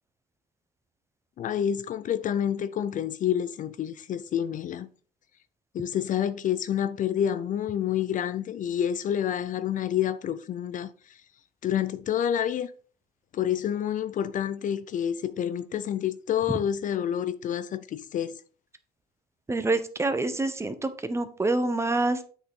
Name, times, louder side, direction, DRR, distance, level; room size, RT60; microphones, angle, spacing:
voice 1, 1.4-4.9 5.7-10.9 11.6-12.7 13.3-18.4, left 9 dB, 50° left, 0.5 m, -28 dB
voice 2, 19.5-22.2, right 2 dB, 15° right, 1.0 m, -26 dB
7.9 x 6.4 x 3.7 m
cardioid pair, 110°, 17 cm